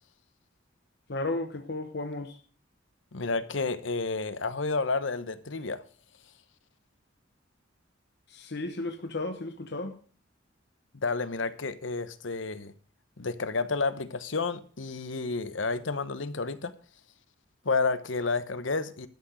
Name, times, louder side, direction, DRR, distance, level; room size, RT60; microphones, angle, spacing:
voice 1, 1.1-2.4 8.3-10.0, left 2 dB, 60° left, 1.1 m, -34 dB
voice 2, 3.1-5.8 10.9-12.7 13.2-16.7 17.6-19.1, left 3 dB, 85° left, 1.0 m, -30 dB
12.5 x 6.2 x 7.9 m
head